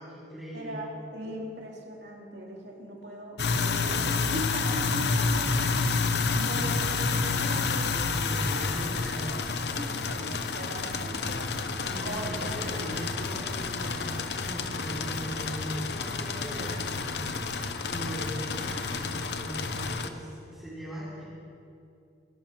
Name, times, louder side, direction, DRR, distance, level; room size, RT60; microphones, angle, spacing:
voice 1, 0.0-0.9 6.3-6.8 7.9-10.9 11.8-21.2, right 1 dB, ahead, -11 dB, 3.9 m, -40 dB
voice 2, 0.5-6.0 6.4-7.9 8.2-8.9 10.2-11.5 12.0-13.0 19.7-19.9, right 1 dB, 80° right, -1 dB, 2.7 m, -39 dB
sound 1, 3.4-20.1, left 4 dB, 70° left, 0.8 m, -29 dB
23.0 x 11.5 x 4.4 m, 2.5 s
head